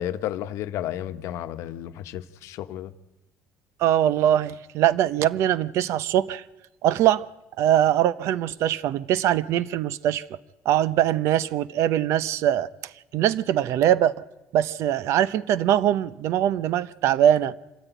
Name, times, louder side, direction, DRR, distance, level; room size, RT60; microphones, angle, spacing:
voice 1, 0.0-2.9, left 12 dB, 65° left, 1.0 m, -32 dB
voice 2, 3.8-6.4 6.8-7.2 7.6-10.2 10.6-12.7 13.1-14.1 14.5-17.5, right 11 dB, 60° right, 0.7 m, -22 dB
26.0 x 14.0 x 9.2 m
cardioid pair, 160°, 5 cm